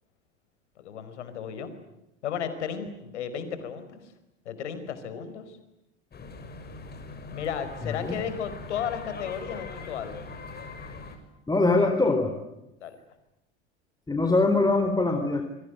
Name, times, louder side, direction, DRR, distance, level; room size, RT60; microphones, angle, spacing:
voice 1, 0.8-1.7 2.2-4.1 4.4-5.6 7.3-10.2 12.8-13.0 14.2-14.4, left 8 dB, 75° left, 11 dB, 4.9 m, -34 dB
sound 1, 6.1-11.2, left 3 dB, 25° left, 6.6 m, -41 dB
voice 2, 7.8-8.2 11.5-12.3 14.1-15.4, left 3 dB, 10° left, 5 dB, 4.1 m, -23 dB
28.5 x 24.5 x 8.0 m, 0.90 s
hypercardioid pair, 80°, 35 cm